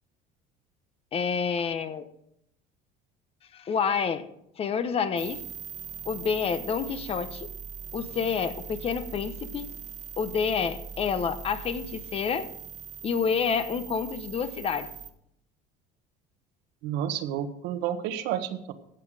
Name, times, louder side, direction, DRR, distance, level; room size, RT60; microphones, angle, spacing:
voice 1, 1.1-2.1 3.5-4.3 4.6-5.4 6.0-7.5 7.9-9.7 10.2-12.5 13.0-14.9, left 6 dB, 35° left, 11 dB, 1.0 m, -28 dB
sound 1, 5.2-15.1, right 7 dB, 45° right, 1.3 m, -41 dB
voice 2, 16.8-18.7, right 10 dB, 80° right, 9 dB, 1.3 m, -30 dB
15.5 x 8.3 x 5.0 m, 0.75 s
cardioid pair, 130°, 17 cm